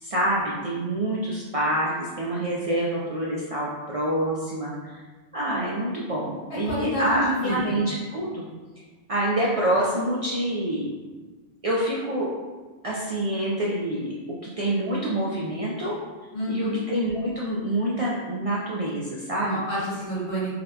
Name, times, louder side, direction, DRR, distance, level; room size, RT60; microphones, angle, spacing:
voice 1, 0.0-5.0 5.3-8.4 9.1-10.9 11.6-12.3 12.8-14.1 14.6-15.9 16.5-19.6, right 1 dB, 55° right, -6 dB, 0.4 m, -26 dB
voice 2, 6.5-7.8 16.3-16.8 19.4-20.5, right 1 dB, 80° left, -9 dB, 1.7 m, -28 dB
3.9 x 2.1 x 2.7 m, 1.3 s
omnidirectional pair, 1.0 m